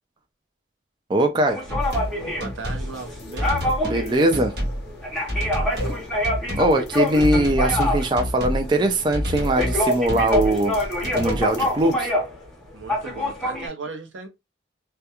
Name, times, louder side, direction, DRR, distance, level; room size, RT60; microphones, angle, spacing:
voice 1, 1.1-1.6 3.8-4.5 6.6-10.8 11.1-12.1, right 1 dB, 25° right, 0.3 m, -21 dB
sound 1, 1.5-12.5 12.8-13.7, left 1 dB, ahead, 0.8 m, -26 dB
sound 2, 1.7-2.1 2.4-2.9 3.4-4.0 4.3-4.8 5.3-6.0 6.2-6.7 7.2-8.6 9.1-9.8 10.1-10.6 11.0-11.4, equal, 60° right, 1.0 m, -27 dB
sound 3, 1.8-11.9, left 1 dB, 55° left, 0.6 m, -40 dB
voice 2, 2.4-3.5 5.5-5.9 12.7-14.3, right 4 dB, 85° right, 0.7 m, -37 dB
2.3 x 2.2 x 2.8 m
head